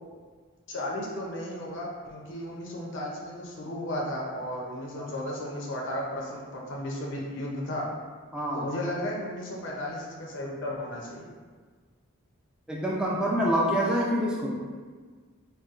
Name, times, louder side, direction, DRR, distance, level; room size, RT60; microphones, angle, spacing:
voice 1, 0.7-7.9 8.5-11.3, left 1 dB, 55° left, -3 dB, 0.5 m, -34 dB
voice 2, 8.3-8.7 12.7-14.6, equal, 5° right, -4 dB, 0.4 m, -26 dB
4.0 x 2.2 x 2.4 m, 1.5 s
head